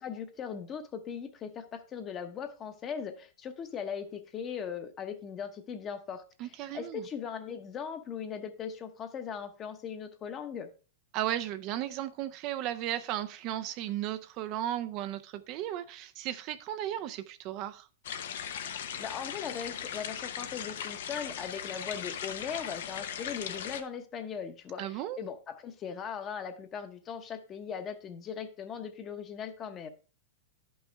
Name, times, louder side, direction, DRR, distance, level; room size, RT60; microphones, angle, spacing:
voice 1, 0.0-10.7 19.0-29.9, left 7 dB, 25° left, 0.9 m, -39 dB
voice 2, 6.4-7.0 11.1-17.9 24.8-25.2, right 12 dB, 40° right, 0.4 m, -35 dB
sound 1, 18.0-23.8, left 8 dB, 75° left, 0.8 m, -38 dB
11.0 x 5.5 x 3.3 m
supercardioid pair, 145°, 0 cm